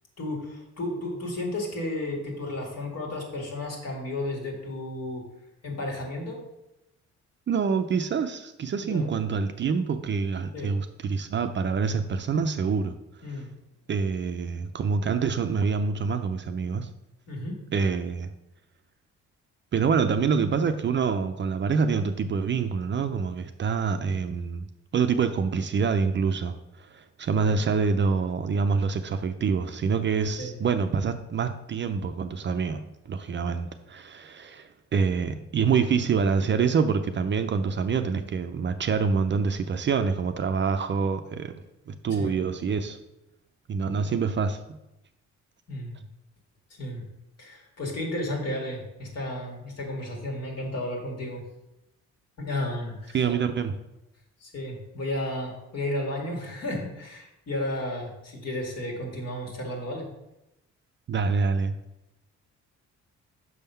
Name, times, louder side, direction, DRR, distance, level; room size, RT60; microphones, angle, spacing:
voice 1, 0.2-5.2 5.6-6.4 8.8-9.1 10.5-10.7 13.2-13.5 17.3-17.6 27.5-27.6 30.4-30.5 42.1-42.3 45.7-46.0 46.8-47.0 47.4-51.4 52.4-53.2 54.4-60.1, left 1 dB, 55° left, 0 dB, 2.1 m, -33 dB
voice 2, 7.5-13.0 13.3-13.4 13.9-16.9 17.7-18.3 19.7-24.7 24.9-32.8 33.1-41.5 41.9-43.0 43.7-44.8 53.1-53.8 61.1-61.8, right 5 dB, 40° right, 8 dB, 0.5 m, -26 dB
6.2 x 3.5 x 5.6 m, 0.90 s
cardioid pair, 90°, 30 cm